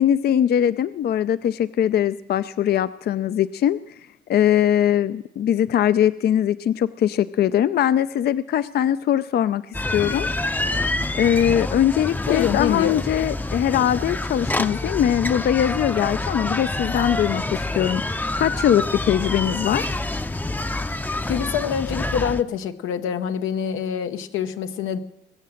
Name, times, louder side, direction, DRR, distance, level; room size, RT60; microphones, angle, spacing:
voice 1, 0.0-3.8 4.3-10.3 10.7-20.0, left 10 dB, 55° left, 15 dB, 0.4 m, -21 dB
sound 1, 9.7-22.4, left 2 dB, 10° left, 0.6 m, -27 dB
voice 2, 12.3-13.0 21.3-25.0, left 8 dB, 90° left, 8 dB, 0.9 m, -25 dB
21.0 x 7.5 x 7.7 m, 0.84 s
cardioid pair, 90°, 20 cm